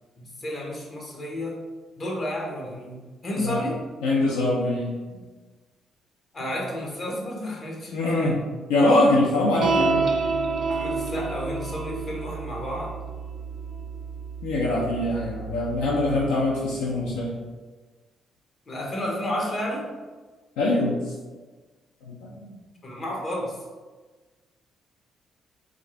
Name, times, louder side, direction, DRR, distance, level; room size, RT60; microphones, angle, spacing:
voice 1, 0.2-1.6 2.0-3.8 6.3-8.3 10.7-12.9 18.7-19.9 22.8-23.6, left 1 dB, 45° left, -1 dB, 1.1 m, -31 dB
voice 2, 4.0-4.9 7.9-8.4 8.7-10.1 14.4-17.4 20.6-21.0 22.1-22.5, left 2 dB, 85° left, -3 dB, 0.5 m, -23 dB
sound 1, 9.6-16.3, right 4 dB, 60° right, 0.4 m, -29 dB
3.6 x 2.5 x 3.2 m, 1.3 s
hypercardioid pair, 55°, 0 cm